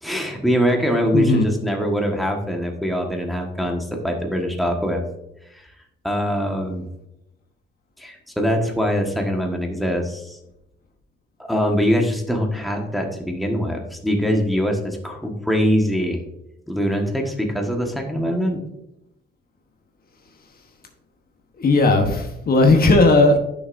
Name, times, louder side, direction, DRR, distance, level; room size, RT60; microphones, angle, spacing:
voice 1, 0.0-5.0 5.5-5.7 6.0-6.9 8.0-10.4 11.4-16.2 16.7-18.6, equal, ahead, 1 dB, 1.5 m, -23 dB
voice 2, 1.1-1.5 21.6-23.4, left 2 dB, 50° left, 4 dB, 1.1 m, -16 dB
10.5 x 6.1 x 2.6 m, 0.85 s
cardioid pair, 90°, 20 cm